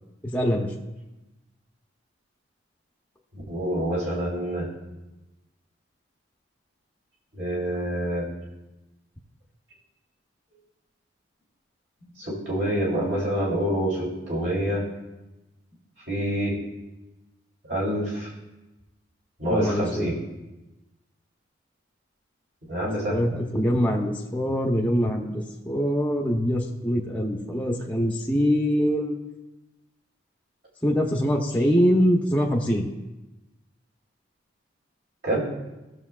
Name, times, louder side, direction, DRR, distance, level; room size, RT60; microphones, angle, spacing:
voice 1, 0.2-0.7 19.5-20.1 23.1-29.2 30.8-32.8, equal, 10° left, 0 dB, 0.8 m, -23 dB
voice 2, 3.3-4.7 7.3-8.2 12.2-14.8 16.1-16.6 17.7-18.3 19.4-20.1 22.7-23.2 35.2-35.4, right 1 dB, 60° right, -5 dB, 3.3 m, -27 dB
17.5 x 7.0 x 2.4 m, 1.0 s
head